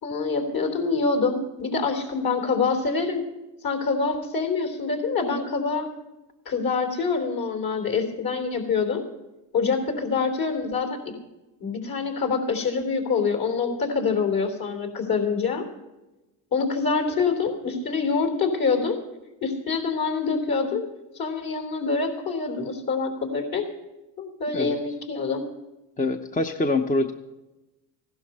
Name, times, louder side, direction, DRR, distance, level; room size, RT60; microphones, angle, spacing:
voice 1, 0.0-3.3 3.6-5.9 6.5-9.0 9.5-11.0 11.6-15.7 16.5-19.0 19.4-20.8 21.1-23.6 24.2-25.5, left 4 dB, 50° left, 4 dB, 3.6 m, -25 dB
voice 2, 26.0-27.1, left 2 dB, 15° left, 7 dB, 0.8 m, -24 dB
16.0 x 12.0 x 5.5 m, 1.0 s
supercardioid pair, 75°, 46 cm